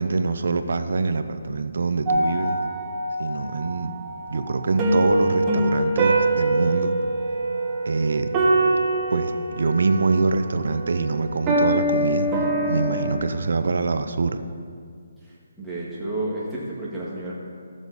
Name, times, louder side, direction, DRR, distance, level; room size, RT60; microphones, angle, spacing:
voice 1, 0.0-2.6 3.2-3.9 4.3-6.9 7.9-8.3 9.1-12.3 12.7-14.4, right 4 dB, 65° right, 9 dB, 0.7 m, -24 dB
sound 1, 2.1-13.1, right 1 dB, 15° right, 1.1 m, -24 dB
voice 2, 15.2-17.3, right 2 dB, ahead, -10 dB, 1.7 m, -31 dB
14.5 x 7.2 x 4.0 m, 2.1 s
hypercardioid pair, 170°, 0 cm